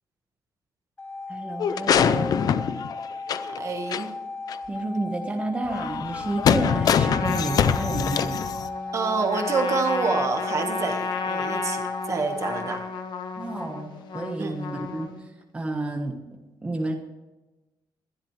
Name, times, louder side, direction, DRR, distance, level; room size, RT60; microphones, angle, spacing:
sound 1, 1.0-12.7, left 3 dB, 15° left, 0.7 m, -36 dB
voice 1, 1.3-2.5 4.7-8.4 13.4-15.1 15.5-16.2 16.6-16.9, right 2 dB, 15° right, 2 dB, 1.4 m, -30 dB
sound 2, 1.6-3.6 3.9-4.0 4.5-4.6 5.7-8.7, left 8 dB, 50° left, 0.6 m, -24 dB
voice 2, 3.4-4.1 8.9-12.8 14.4-14.5, right 4 dB, 40° right, 4 dB, 1.6 m, -27 dB
Trumpet, 6.6-15.3, left 4 dB, 70° left, 1.3 m, -33 dB
21.0 x 12.0 x 3.3 m, 1.1 s
cardioid pair, 160°, 8 cm